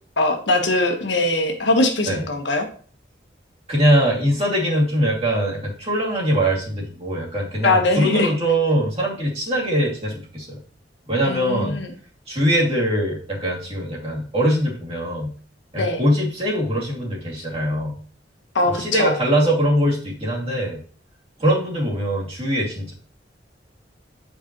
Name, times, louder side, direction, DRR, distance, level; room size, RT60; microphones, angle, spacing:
voice 1, 0.2-2.7 7.6-8.3 11.2-11.9 15.8-16.0 18.5-19.2, left 2 dB, 80° left, 3 dB, 1.3 m, -21 dB
voice 2, 3.7-10.6 11.1-11.8 12.3-15.3 15.7-17.9 18.8-20.8 21.4-22.9, equal, 35° right, -4 dB, 2.4 m, -22 dB
7.7 x 5.3 x 3.0 m, 0.42 s
head